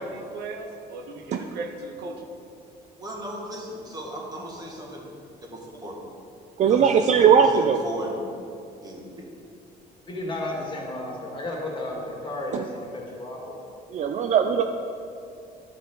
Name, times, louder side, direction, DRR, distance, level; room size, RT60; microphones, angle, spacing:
voice 1, 0.0-2.2, right 3 dB, 80° right, 3 dB, 0.9 m, -36 dB
voice 2, 3.0-5.0 5.5-6.0 6.7-8.2 8.8-9.0, right 1 dB, 20° right, -2 dB, 1.7 m, -36 dB
voice 3, 6.6-7.8 12.5-12.6 13.9-14.6, right 7 dB, 45° right, 6 dB, 0.4 m, -19 dB
voice 4, 10.1-13.5, left 1 dB, 30° left, -2 dB, 1.9 m, -33 dB
11.5 x 5.4 x 3.8 m, 2.6 s
cardioid pair, 110°, 17 cm